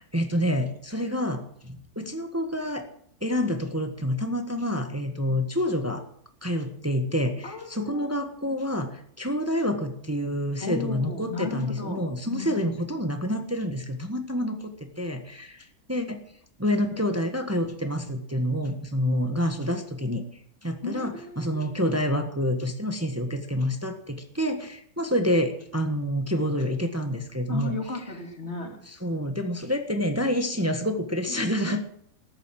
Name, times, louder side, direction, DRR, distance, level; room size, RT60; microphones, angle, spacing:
voice 1, 0.0-2.9 3.2-6.0 6.4-15.6 15.9-16.3 16.6-20.2 20.6-27.7 28.8-31.8, equal, 10° right, 5 dB, 1.4 m, -28 dB
voice 2, 7.4-8.1 10.6-12.7 20.8-21.6 27.5-28.8, left 3 dB, 40° left, 3 dB, 2.8 m, -34 dB
14.0 x 11.0 x 7.6 m, 0.65 s
omnidirectional pair, 1.7 m